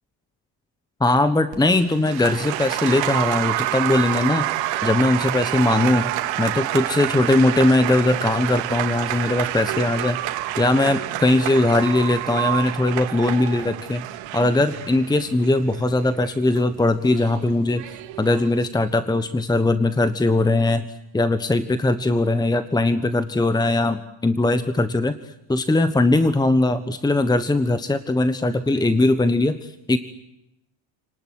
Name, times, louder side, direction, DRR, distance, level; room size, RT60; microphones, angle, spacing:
voice 1, 1.0-4.5 4.8-6.1 6.4-14.1 14.3-17.8 18.2-20.9 21.1-25.1 25.5-30.0, left 2 dB, 10° left, 11 dB, 1.3 m, -20 dB
Applause, 1.5-18.7, right 15 dB, 75° right, 2.9 m, -28 dB
30.0 x 19.0 x 9.8 m, 0.88 s
cardioid pair, 135°, 44 cm